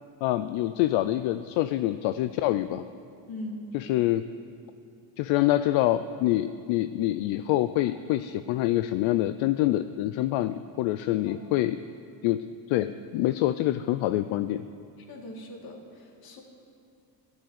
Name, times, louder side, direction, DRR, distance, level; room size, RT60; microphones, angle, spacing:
voice 1, 0.2-2.8 3.7-4.2 5.2-11.8 12.2-14.6, left 14 dB, 75° left, 12 dB, 0.6 m, -26 dB
voice 2, 3.3-3.6 11.2-11.4 15.1-16.4, left 1 dB, 50° left, 2 dB, 2.3 m, -40 dB
12.5 x 8.1 x 9.5 m, 2.6 s
cardioid pair, 135°, 47 cm